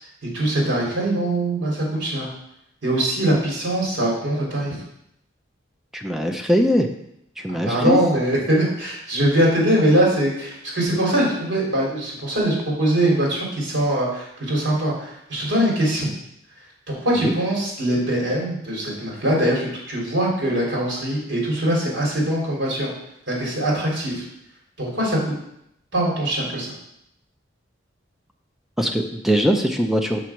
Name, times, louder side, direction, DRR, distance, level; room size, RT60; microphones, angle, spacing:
voice 1, 0.2-2.3 2.8-4.8 7.5-16.1 16.9-22.9 23.3-24.2 24.8-25.3 25.9-26.7, right 1 dB, 75° right, -3 dB, 3.1 m, -22 dB
voice 2, 5.9-6.9 7.4-8.0 17.2-17.3 28.8-30.2, equal, ahead, 4 dB, 0.5 m, -21 dB
6.1 x 4.7 x 5.8 m, 0.77 s
head